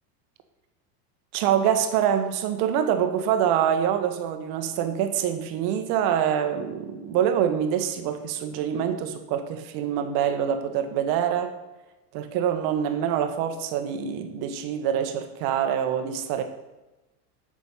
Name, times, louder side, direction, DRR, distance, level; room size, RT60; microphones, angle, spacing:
voice 1, 1.3-11.5 12.1-16.4, right 9 dB, 50° right, 8 dB, 1.2 m, -25 dB
8.2 x 6.2 x 5.6 m, 1.1 s
supercardioid pair, 130°, 49 cm